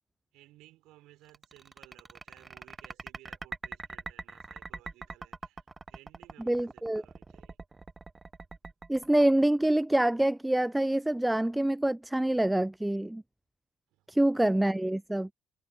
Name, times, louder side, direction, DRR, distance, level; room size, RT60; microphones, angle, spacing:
voice 1, 0.3-7.6 13.9-14.2, right 17 dB, 65° right, 6.2 m, -59 dB
sound 1, 1.3-10.0, right 3 dB, 25° right, 1.2 m, -43 dB
voice 2, 6.5-7.0 8.9-13.2 14.1-15.3, right 1 dB, 10° right, 0.3 m, -26 dB
figure-of-eight pair, 45°, 0 cm